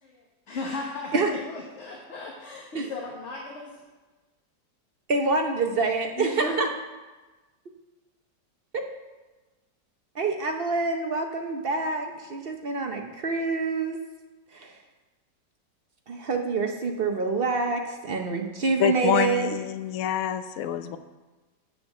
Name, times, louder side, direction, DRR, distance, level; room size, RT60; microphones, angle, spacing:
voice 1, 0.0-3.7 6.2-6.6, left 2 dB, 45° left, -2 dB, 1.3 m, -36 dB
voice 2, 5.1-6.7 10.1-14.0 14.5-14.7 16.1-19.5, right 3 dB, 60° right, 3 dB, 0.5 m, -26 dB
voice 3, 18.8-21.0, left 10 dB, 65° left, 10 dB, 0.9 m, -26 dB
7.0 x 6.7 x 7.2 m, 1.2 s
omnidirectional pair, 1.9 m